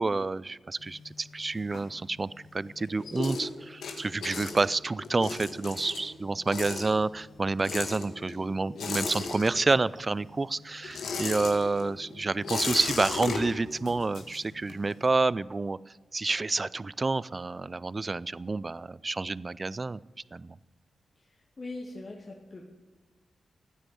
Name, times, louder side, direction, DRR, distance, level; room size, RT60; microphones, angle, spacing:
voice 1, 0.0-20.0 20.3-20.6, right 3 dB, 30° right, 20 dB, 0.4 m, -29 dB
sound 1, 0.8-2.4 2.7-10.0 10.2-14.9, left 4 dB, 90° left, 2.3 m, -36 dB
voice 2, 21.2-22.6, left 2 dB, 35° left, -2 dB, 2.3 m, -42 dB
15.5 x 9.6 x 8.6 m, 1.3 s
cardioid pair, 95°, 0 cm